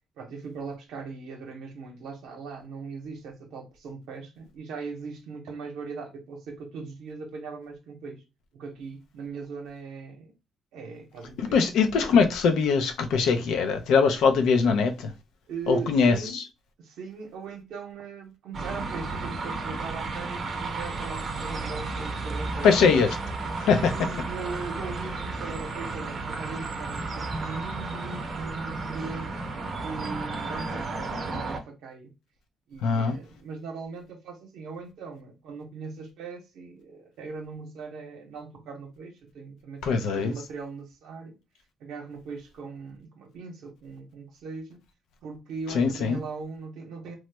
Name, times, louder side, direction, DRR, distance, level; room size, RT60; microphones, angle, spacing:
voice 1, 0.2-8.2 8.5-10.3 10.7-11.7 15.5-16.4 16.8-22.7 23.7-29.4 29.8-32.1 32.7-41.4 41.8-44.8 45.2-47.1, right 4 dB, 85° right, 0.7 m, -39 dB
voice 2, 11.4-15.1 15.7-16.4 22.6-23.1 23.6-23.8 32.8-33.2 39.8-40.3 45.7-46.2, left 5 dB, 85° left, 0.5 m, -22 dB
sound 1, 18.5-31.6, right 3 dB, 50° right, 0.6 m, -33 dB
3.0 x 2.0 x 3.2 m
cardioid pair, 90°, 0 cm